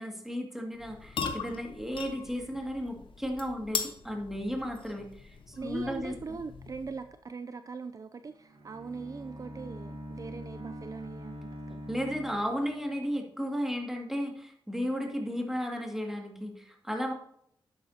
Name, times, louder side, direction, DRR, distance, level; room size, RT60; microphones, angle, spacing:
voice 1, 0.0-6.4 11.9-17.1, equal, 5° right, 1 dB, 2.2 m, -34 dB
sound 1, 0.7-7.1, left 5 dB, 70° left, 1.1 m, -40 dB
voice 2, 5.5-11.9, right 4 dB, 40° right, 10 dB, 0.4 m, -41 dB
Bowed string instrument, 8.3-13.0, equal, 80° right, 2.0 m, -44 dB
11.0 x 8.1 x 2.8 m, 0.70 s
cardioid pair, 90°, 9 cm